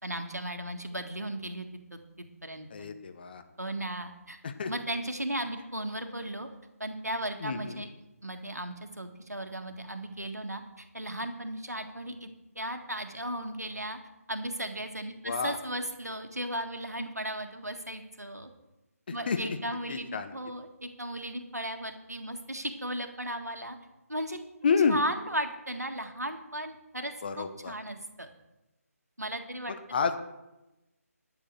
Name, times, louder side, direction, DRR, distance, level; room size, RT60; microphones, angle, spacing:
voice 1, 0.0-1.7 1.9-2.9 3.6-4.4 4.7-6.5 6.8-12.3 12.5-14.0 14.3-18.5 19.1-23.8 24.1-24.4 24.9-28.3 29.2-29.7, right 1 dB, 90° right, 6 dB, 1.7 m, -36 dB
voice 2, 2.7-3.4 4.4-4.7 7.4-7.8 15.2-15.6 19.3-19.4 19.9-20.3 24.6-25.0 27.2-27.7 29.9-30.2, left 5 dB, 35° left, 8 dB, 1.0 m, -29 dB
11.5 x 6.4 x 7.8 m, 0.98 s
figure-of-eight pair, 150°, 9 cm